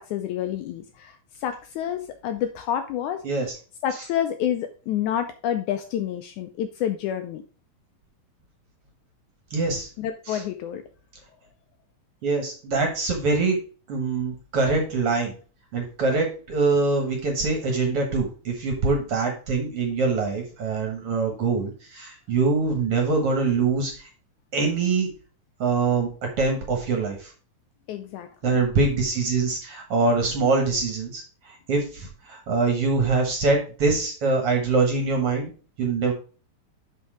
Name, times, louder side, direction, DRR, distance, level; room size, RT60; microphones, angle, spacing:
voice 1, 0.0-3.2 3.8-7.4 10.0-10.8 27.9-28.6, left 10 dB, 80° left, 7 dB, 1.8 m, -29 dB
voice 2, 9.5-9.9 10.3-10.4 12.2-13.6 13.9-15.3 15.7-24.0 24.5-25.1 25.6-26.1 26.4-27.3 28.4-35.5 35.8-36.1, right 4 dB, 55° right, 3 dB, 2.0 m, -24 dB
6.1 x 5.6 x 4.9 m, 0.36 s
omnidirectional pair, 3.9 m